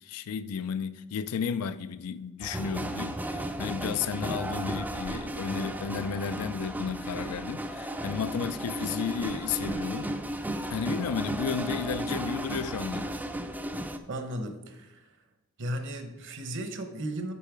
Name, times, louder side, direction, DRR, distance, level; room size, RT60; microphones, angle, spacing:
voice 1, 0.0-10.1 10.7-13.1, left 6 dB, 80° left, 0.4 m, -33 dB
sound 1, 2.4-14.0, right 1 dB, 10° right, 0.4 m, -34 dB
voice 2, 14.1-15.2 15.6-17.3, right 1 dB, 55° right, 0.9 m, -35 dB
6.9 x 5.4 x 4.9 m
head